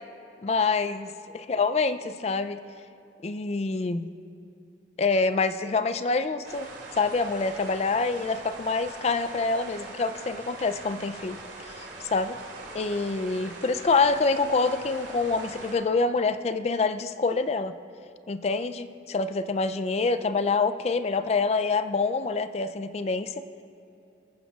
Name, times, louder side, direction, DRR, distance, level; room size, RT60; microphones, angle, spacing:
voice 1, 0.4-1.1 1.3-2.6 3.2-4.1 5.0-6.7 7.0-12.4 12.7-17.8 18.3-23.5, left 4 dB, 35° left, 11 dB, 0.3 m, -26 dB
sound 1, 6.4-15.7, right 2 dB, 85° right, 2.4 m, -42 dB
24.0 x 9.3 x 2.4 m, 2.8 s
head